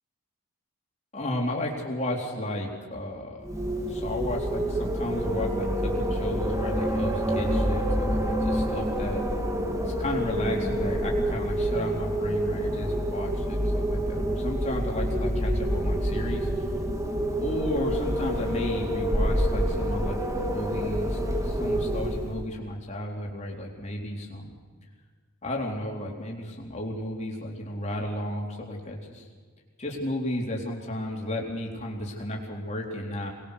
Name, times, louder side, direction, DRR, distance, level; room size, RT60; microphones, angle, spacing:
voice 1, 1.1-3.5 3.9-9.2 9.8-16.7 17.4-24.6 25.4-29.3 29.8-33.3, left 1 dB, 30° left, -1 dB, 4.0 m, -33 dB
Wind, 3.4-22.5, equal, 15° right, 1.9 m, -27 dB
24.0 x 21.0 x 6.7 m, 1.5 s
head